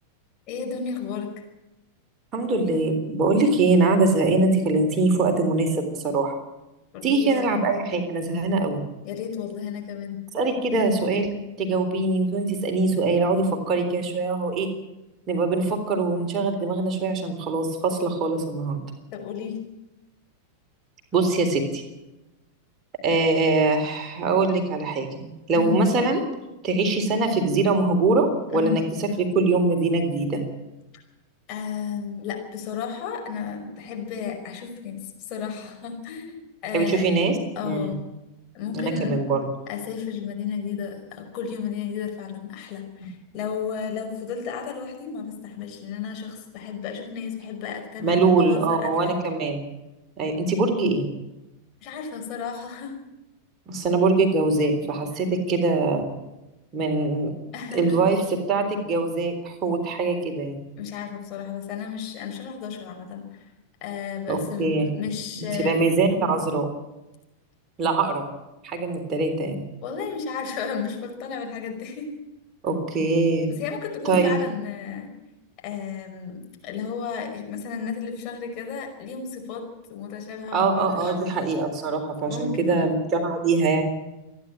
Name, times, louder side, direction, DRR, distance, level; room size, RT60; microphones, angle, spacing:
voice 1, 0.5-1.4 6.9-7.5 9.0-10.2 19.1-19.6 25.5-25.8 28.5-28.8 31.5-36.4 36.6-37.0 37.6-38.0 38.5-39.2 39.7-49.1 51.8-53.0 57.5-58.0 60.8-63.5 63.8-65.8 69.8-72.1 73.5-75.1 75.6-76.4 76.6-81.4 82.3-83.0, left 6 dB, 40° left, 2 dB, 5.2 m, -33 dB
voice 2, 2.3-6.4 7.0-8.8 10.3-14.7 15.3-18.8 21.1-21.8 23.0-26.2 26.6-28.8 29.2-30.4 36.7-37.4 37.6-38.0 38.7-39.5 48.0-49.7 50.2-51.1 53.7-56.1 56.7-57.3 57.7-60.6 64.3-64.9 65.4-66.7 67.8-68.2 68.6-69.6 72.6-73.5 74.1-74.4 80.5-83.8, right 3 dB, 30° right, 4 dB, 3.7 m, -23 dB
27.5 x 10.5 x 9.0 m, 0.98 s
figure-of-eight pair, 90°, 0 cm